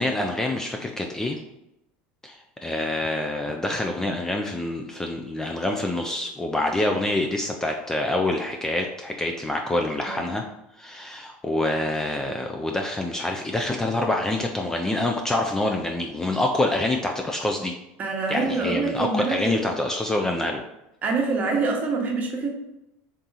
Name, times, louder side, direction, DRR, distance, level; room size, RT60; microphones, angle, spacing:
voice 1, 0.0-1.4 2.2-10.4 10.8-17.7 18.3-20.6, left 1 dB, 10° left, 2 dB, 0.3 m, -26 dB
voice 2, 18.0-19.5 21.0-22.5, right 4 dB, 35° right, 1 dB, 1.0 m, -25 dB
3.6 x 2.8 x 3.9 m, 0.88 s
supercardioid pair, 125°, 5 cm